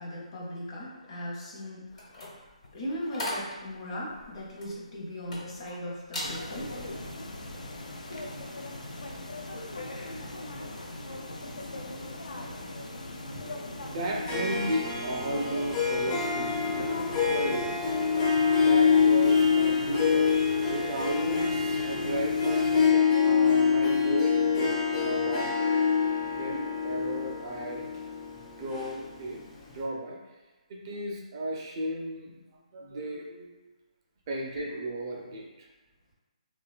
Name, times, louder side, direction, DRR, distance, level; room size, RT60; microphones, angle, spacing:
voice 1, 0.0-2.3 2.7-6.7 8.1-8.2 34.6-34.7, equal, 45° left, -3 dB, 0.8 m, -38 dB
sound 1, 1.9-5.7 6.1-6.4 6.9-7.1, left 1 dB, 65° left, 1.1 m, -38 dB
sound 2, 6.2-22.9, left 2 dB, 90° left, 0.4 m, -39 dB
voice 2, 13.8-17.0 17.3-17.9 18.6-27.8 28.3-29.4 29.7-30.2 30.7-32.3 32.7-33.5 34.3-35.7, right 1 dB, 35° right, -1 dB, 0.4 m, -35 dB
Harp, 14.1-29.4, left 6 dB, 25° left, 0.5 m, -25 dB
3.0 x 2.2 x 2.4 m, 1.2 s
hypercardioid pair, 150°, 4 cm